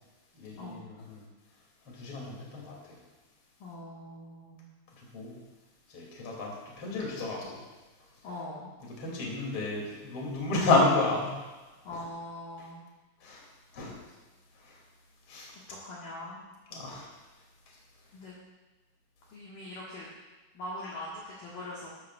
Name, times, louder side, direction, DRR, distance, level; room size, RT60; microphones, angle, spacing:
voice 1, 0.3-1.3 1.8-3.0 4.9-5.4 5.9-7.6 9.0-11.3 11.9-12.0 12.6-12.7 13.2-13.5 13.7-14.0 14.5-14.8 15.3-15.5 16.7-17.1 17.7-17.8, left 2 dB, 35° left, -3 dB, 2.7 m, -31 dB
voice 2, 3.6-4.7 8.2-8.7 11.8-12.8 15.7-16.4 18.1-18.3 19.3-20.1 20.5-21.9, left 1 dB, 60° left, -6 dB, 2.6 m, -42 dB
13.0 x 12.5 x 2.5 m, 1.2 s
omnidirectional pair, 5.7 m